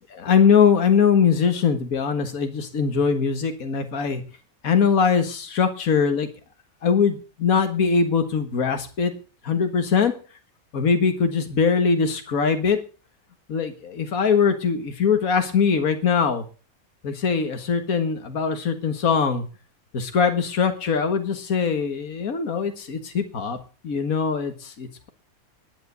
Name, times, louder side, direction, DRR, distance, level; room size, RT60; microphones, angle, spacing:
voice 1, 0.2-4.2 4.6-6.3 6.8-9.1 9.4-10.1 10.7-12.8 13.5-16.4 17.0-19.4 19.9-23.6 23.8-25.1, left 6 dB, 75° left, 7 dB, 2.0 m, -21 dB
10.5 x 10.5 x 6.8 m, 0.36 s
omnidirectional pair, 1.5 m